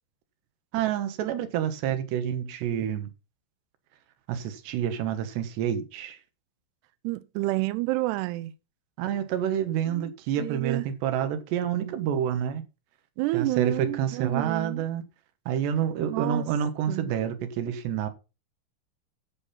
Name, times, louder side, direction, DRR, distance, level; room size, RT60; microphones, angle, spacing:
voice 1, 0.7-3.1 4.3-6.2 9.0-12.6 13.3-15.0 15.5-18.1, right 9 dB, 70° right, 3.2 m, -28 dB
voice 2, 7.0-8.5 9.9-10.1 10.4-10.9 13.2-14.9 16.1-16.5 16.9-17.1, right 19 dB, 90° right, 2.4 m, -29 dB
12.0 x 6.3 x 5.7 m
omnidirectional pair, 5.6 m